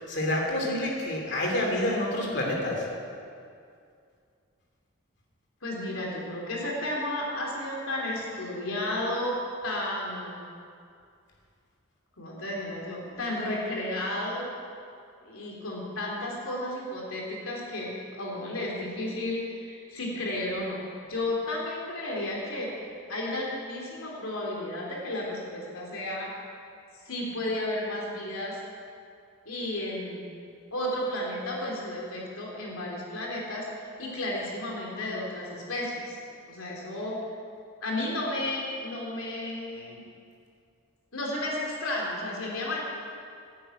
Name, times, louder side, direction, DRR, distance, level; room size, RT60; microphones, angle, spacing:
voice 1, 0.0-2.8, left 1 dB, 50° left, -1 dB, 3.0 m, -28 dB
voice 2, 5.6-9.4 9.6-10.4 12.2-14.5 15.2-20.8 21.1-22.7 23.1-26.3 27.0-28.6 29.4-30.3 30.7-33.7 34.0-36.2 36.5-37.2 37.8-40.0 41.1-42.8, left 1 dB, 80° left, -3 dB, 3.3 m, -33 dB
11.5 x 10.5 x 9.1 m, 2.4 s
head